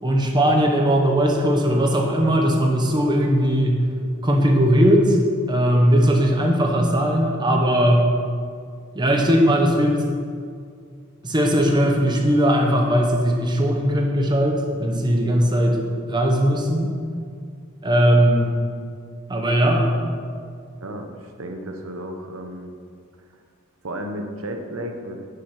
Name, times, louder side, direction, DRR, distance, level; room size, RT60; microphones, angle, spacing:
voice 1, 0.0-3.9 4.2-5.2 5.5-8.1 8.9-10.0 11.2-16.9 17.8-18.5 19.3-20.0, equal, 20° right, 1 dB, 1.1 m, -19 dB
voice 2, 20.8-22.7 23.8-25.2, right 1 dB, 70° right, 4 dB, 0.9 m, -33 dB
10.5 x 6.4 x 5.9 m, 2.1 s
head